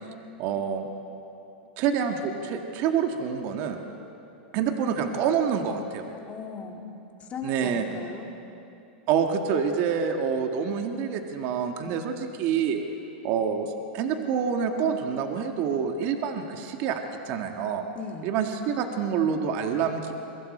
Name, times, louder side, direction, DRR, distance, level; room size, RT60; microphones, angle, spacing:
voice 1, 0.4-0.9 1.8-3.8 4.5-6.0 7.4-7.8 9.1-12.8 13.2-17.9 18.2-20.1, right 7 dB, 45° right, 4 dB, 1.7 m, -27 dB
voice 2, 6.3-6.8 7.2-8.3 11.8-12.1 17.9-18.3, left 5 dB, 25° left, 2 dB, 2.3 m, -38 dB
28.5 x 23.0 x 4.4 m, 2.8 s
supercardioid pair, 140°, 5 cm